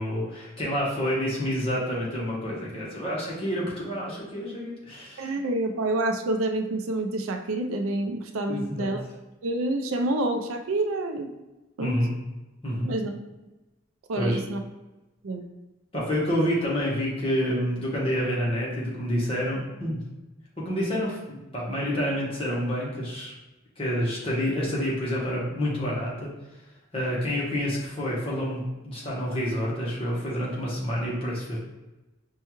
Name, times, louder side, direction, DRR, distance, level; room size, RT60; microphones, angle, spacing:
voice 1, 0.0-5.3 8.5-8.9 11.8-12.1 12.6-12.9 14.2-14.4 15.9-20.0 20.6-23.3 23.8-26.3 26.9-31.6, equal, 25° left, -5 dB, 1.1 m, -28 dB
voice 2, 5.2-9.0 9.4-11.3 11.8-12.0 12.8-13.1 14.1-14.6 15.2-15.4, right 2 dB, 85° right, 5 dB, 0.5 m, -28 dB
5.4 x 2.3 x 3.0 m, 1.1 s
head